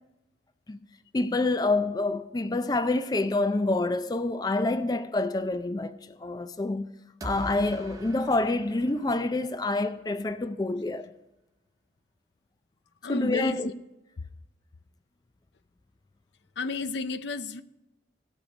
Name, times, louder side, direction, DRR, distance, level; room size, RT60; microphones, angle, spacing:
voice 1, 1.1-6.9 7.2-11.1 13.1-13.7, left 2 dB, 20° left, 0.4 m, -27 dB
sound 1, 7.2-10.1, right 1 dB, 20° right, 0.8 m, -42 dB
voice 2, 13.0-13.6 16.6-17.6, left 3 dB, 80° left, 0.6 m, -31 dB
16.0 x 6.4 x 5.2 m
head